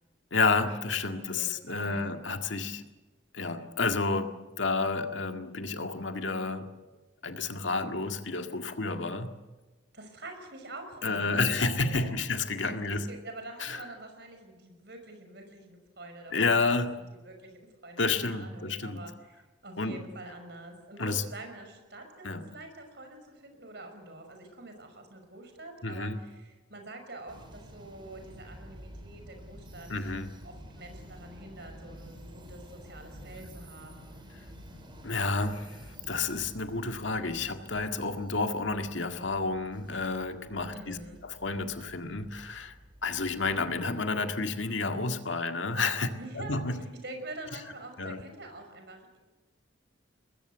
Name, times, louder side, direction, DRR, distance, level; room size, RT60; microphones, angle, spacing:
voice 1, 0.3-2.8 3.3-6.7 7.2-9.3 11.0-13.0 13.6-13.8 16.3-16.9 18.0-19.0 19.8-20.0 21.0-21.2 22.2-22.4 25.8-26.2 29.9-30.3 35.0-35.8 36.1-41.0 41.2-42.7 43.0-46.1 46.4-46.7 48.0-48.2, left 3 dB, 75° left, 1.9 m, -30 dB
voice 2, 1.1-2.1 9.9-12.1 12.6-12.7 13.1-16.8 17.2-29.9 30.4-34.3 40.7-41.2 46.2-49.2, right 2 dB, 60° right, 5.8 m, -46 dB
sound 1, 27.3-43.8, equal, 25° right, 4.8 m, -50 dB
23.0 x 21.0 x 8.0 m
head